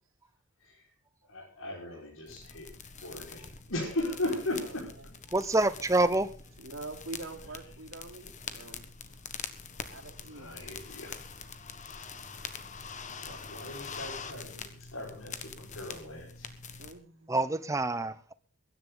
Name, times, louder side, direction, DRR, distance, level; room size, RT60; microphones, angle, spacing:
voice 1, 1.2-2.7 3.0-4.9 10.2-11.2 13.2-16.6, left 1 dB, 85° left, 5.1 m, -37 dB
sound 1, 2.3-16.9, left 5 dB, 35° left, 1.4 m, -44 dB
voice 2, 5.3-6.3 17.3-18.3, right 2 dB, 15° right, 0.8 m, -27 dB
voice 3, 6.6-8.9 9.9-10.5 16.8-17.6, right 3 dB, 75° right, 3.4 m, -44 dB
23.0 x 10.5 x 3.9 m
head